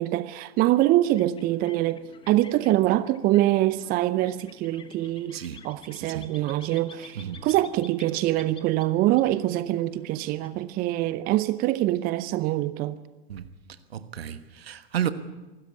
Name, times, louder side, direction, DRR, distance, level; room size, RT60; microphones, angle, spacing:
voice 1, 0.0-13.0, right 15 dB, 30° right, 0.6 m, -24 dB
sound 1, 0.9-11.2, left 5 dB, 15° left, 1.4 m, -51 dB
voice 2, 5.3-5.6 5.9-6.3 7.1-7.4 13.3-13.5 13.9-15.1, right 10 dB, 70° right, 1.4 m, -32 dB
25.0 x 13.5 x 8.4 m
figure-of-eight pair, 95°, 32 cm